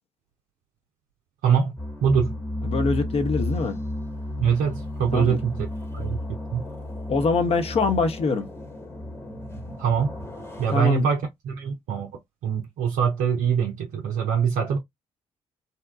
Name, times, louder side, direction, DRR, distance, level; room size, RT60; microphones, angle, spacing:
voice 1, 1.4-1.7 2.0-2.4 4.4-5.7 5.9-6.2 6.5-6.6 9.8-10.1 10.6-14.8, right 7 dB, 60° right, 0.5 m, -23 dB
sound 1, 1.8-10.8, left 1 dB, 15° left, 1.0 m, -33 dB
voice 2, 2.6-3.8 5.1-5.4 7.1-8.5 10.7-11.1, left 4 dB, 40° left, 0.7 m, -23 dB
2.7 x 2.2 x 2.3 m
figure-of-eight pair, 40°, 15 cm